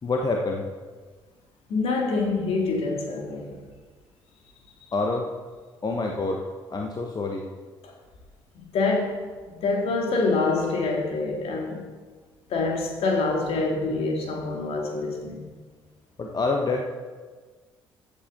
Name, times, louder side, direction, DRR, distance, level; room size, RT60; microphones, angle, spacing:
voice 1, 0.0-0.7 4.9-5.3 5.8-7.5 16.2-16.8, left 3 dB, 35° left, 1.2 m, -27 dB
voice 2, 1.7-3.6 8.5-9.3 9.5-11.8 12.5-15.5, left 3 dB, 55° left, 2.3 m, -26 dB
14.5 x 8.6 x 3.9 m
figure-of-eight pair, 45°, 12 cm